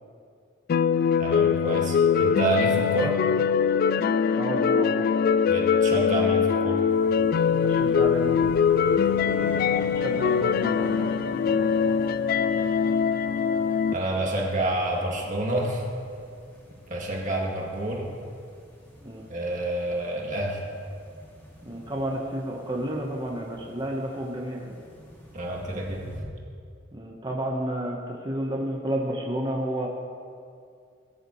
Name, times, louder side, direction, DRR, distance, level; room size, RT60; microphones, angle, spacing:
sound 1, 0.7-13.9, left 6 dB, 50° left, 0.3 m, -22 dB
voice 1, 1.2-3.2 5.5-6.8 13.9-15.8 16.9-18.1 19.3-20.6 25.3-26.1, right 1 dB, 40° right, -2 dB, 2.1 m, -28 dB
voice 2, 4.3-5.1 7.4-8.6 9.2-12.0 19.0-19.3 21.6-24.8 26.9-29.9, right 1 dB, 25° right, -1 dB, 1.2 m, -32 dB
sound 2, 6.9-26.2, equal, 10° left, 2.3 m, -49 dB
sound 3, 8.2-15.2, right 1 dB, 70° right, 2.5 m, -44 dB
19.5 x 10.0 x 3.2 m, 2.3 s
head